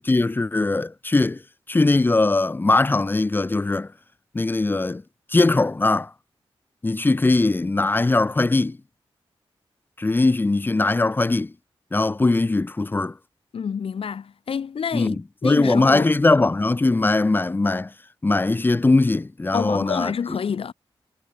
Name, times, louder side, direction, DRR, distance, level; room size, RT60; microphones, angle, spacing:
voice 1, 0.0-1.4 1.7-3.9 4.3-5.0 5.3-6.1 6.8-8.8 10.0-11.5 11.9-13.2 14.9-17.9 18.2-20.1, left 2 dB, 20° left, 1.0 m, -20 dB
voice 2, 13.5-16.1 19.5-20.7, left 7 dB, 75° left, 2.6 m, -28 dB
wide cardioid pair, 160°, 10 cm